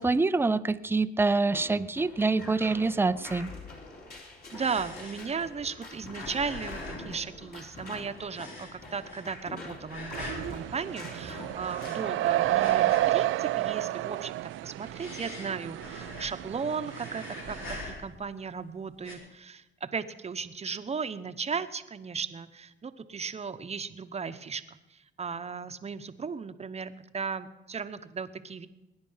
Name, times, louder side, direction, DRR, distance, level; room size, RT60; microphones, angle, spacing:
voice 1, 0.0-3.5, right 3 dB, 10° right, 13 dB, 0.5 m, -26 dB
sound 1, 1.5-12.9, left 2 dB, 50° left, 4.0 m, -45 dB
sound 2, 4.0-7.9 8.2-9.5 9.8-10.5 11.5-13.3 13.6-14.1 14.6-16.5 16.8-18.3 18.9-19.2, left 2 dB, 75° left, 4.0 m, -43 dB
voice 2, 4.5-14.3 14.6-28.7, right 5 dB, 30° right, 10 dB, 0.9 m, -36 dB
sound 3, 10.1-17.8, right 15 dB, 80° right, 0.4 m, -30 dB
20.0 x 9.8 x 5.6 m, 1.0 s
cardioid pair, 90°, 20 cm